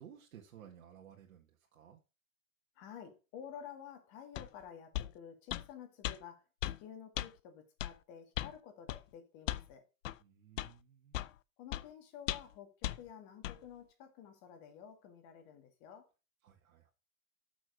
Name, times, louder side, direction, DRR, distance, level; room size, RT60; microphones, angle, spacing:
voice 1, 0.0-2.0 10.2-11.3 16.4-16.9, right 9 dB, 75° right, 1.9 m, -56 dB
voice 2, 2.8-6.4 6.8-9.8 11.6-16.1, left 8 dB, 45° left, 2.3 m, -51 dB
sound 1, 4.4-4.5 4.9-5.1 5.5-5.7 6.0-6.2 6.6-6.8 7.2-7.3 7.8-7.9 8.4-8.5 8.9-9.0 9.5-9.7 10.0-10.2 10.6-10.7 11.1-11.3 11.7-11.8 12.3-12.5 12.8-13.0 13.4-13.6, left 14 dB, 65° left, 0.6 m, -37 dB
6.5 x 6.2 x 6.3 m
hypercardioid pair, 135°, 41 cm